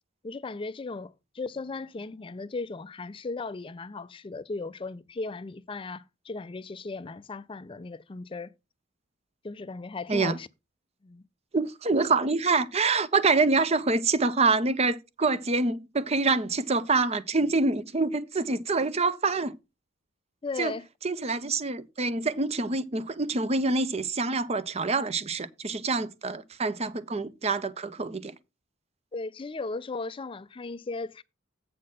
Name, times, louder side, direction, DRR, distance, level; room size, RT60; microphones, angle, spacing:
voice 1, 0.2-8.5 9.4-10.5 11.0-11.3 20.4-20.8 29.1-31.2, left 3 dB, 25° left, 0.4 m, -36 dB
voice 2, 11.5-19.5 20.6-20.7 21.0-28.3, right 3 dB, 30° right, 0.7 m, -26 dB
8.5 x 4.0 x 6.5 m
head